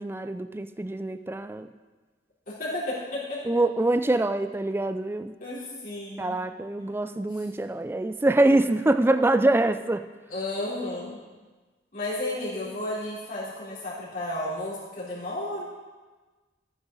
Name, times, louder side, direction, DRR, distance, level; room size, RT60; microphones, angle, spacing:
voice 1, 0.0-1.7 3.5-5.3 6.2-10.0, right 2 dB, 10° right, 10 dB, 0.4 m, -24 dB
voice 2, 2.5-3.4 4.0-4.1 5.4-6.4 10.3-11.2 11.9-15.6, left 1 dB, 45° left, -8 dB, 3.9 m, -33 dB
14.5 x 9.7 x 4.1 m, 1.3 s
head